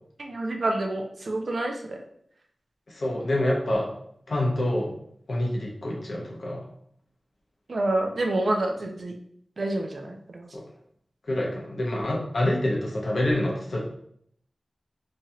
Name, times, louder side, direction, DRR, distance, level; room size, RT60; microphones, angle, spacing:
voice 1, 0.2-2.0 7.7-9.1 9.6-10.5, right 2 dB, 65° right, 3 dB, 0.5 m, -28 dB
voice 2, 2.9-3.9 4.3-4.9 5.3-6.7 10.5-10.6 11.3-13.8, left 1 dB, 70° left, -2 dB, 0.8 m, -26 dB
3.0 x 2.8 x 2.4 m, 0.68 s
wide cardioid pair, 80°, 0 cm